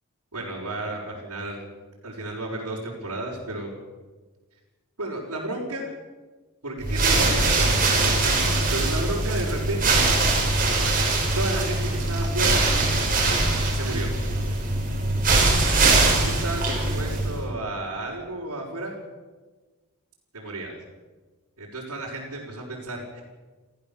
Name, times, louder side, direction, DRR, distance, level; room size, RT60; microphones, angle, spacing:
voice 1, 0.3-1.7 2.0-3.7 5.0-5.9 6.6-8.2 8.7-10.1 11.4-12.6 13.7-14.1 15.9-18.9 20.3-20.8 21.6-23.2, right 2 dB, 85° right, -6 dB, 5.6 m, -32 dB
sound 1, 6.8-17.5, right 2 dB, 40° right, 5.8 m, -22 dB
30.0 x 14.5 x 7.3 m, 1.3 s
head